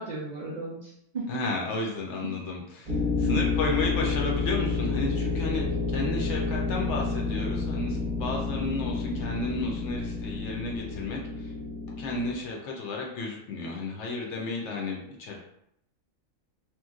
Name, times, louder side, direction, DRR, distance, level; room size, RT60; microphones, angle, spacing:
voice 1, 0.0-1.4 2.2-2.3 3.2-3.5, right 3 dB, 80° right, -5 dB, 0.3 m, -34 dB
voice 2, 1.3-11.5 11.8-15.4, left 3 dB, 65° left, -1 dB, 0.8 m, -33 dB
sound 1, 2.9-12.3, left 4 dB, 35° right, 0.7 m, -29 dB
3.0 x 2.5 x 2.3 m, 0.75 s
omnidirectional pair, 1.4 m